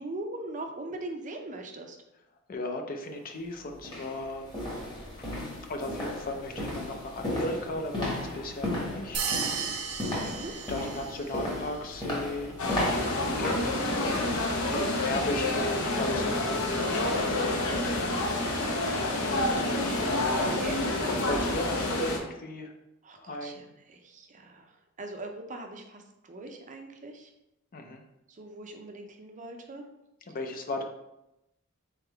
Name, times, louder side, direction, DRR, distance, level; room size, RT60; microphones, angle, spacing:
voice 1, 0.0-2.0 10.3-10.5 14.6-14.8 20.4-20.8 23.0-27.3 28.3-29.9, right 2 dB, 35° right, 4 dB, 0.5 m, -41 dB
voice 2, 2.5-4.8 5.7-9.4 10.7-17.5 18.4-19.5 20.4-20.6 21.1-22.7 23.2-23.6 27.7-28.0 30.3-30.8, left 2 dB, 40° left, 4 dB, 0.5 m, -36 dB
sound 1, 3.1-3.2 3.8-15.0 15.4-15.6 16.1-16.2, left 1 dB, 20° left, 1.2 m, -35 dB
sound 2, 9.1-11.4, right 6 dB, 80° right, 0.6 m, -34 dB
sound 3, 12.6-22.2, left 2 dB, 75° left, 0.8 m, -28 dB
4.0 x 3.5 x 3.4 m, 0.88 s
head